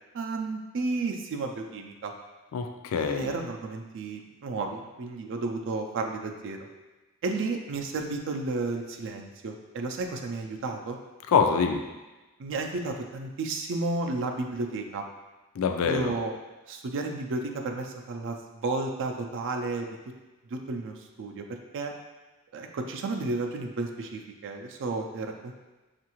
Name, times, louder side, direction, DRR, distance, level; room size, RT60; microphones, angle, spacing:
voice 1, 0.1-2.1 3.0-6.7 7.2-11.0 12.4-15.0 15.8-16.3 16.7-20.1 20.5-22.0 22.5-25.5, right 3 dB, 60° right, 3 dB, 0.4 m, -32 dB
voice 2, 2.5-3.3 11.3-11.8 15.6-16.1, left 5 dB, 65° left, 5 dB, 0.4 m, -25 dB
5.4 x 2.5 x 2.9 m, 1.1 s
head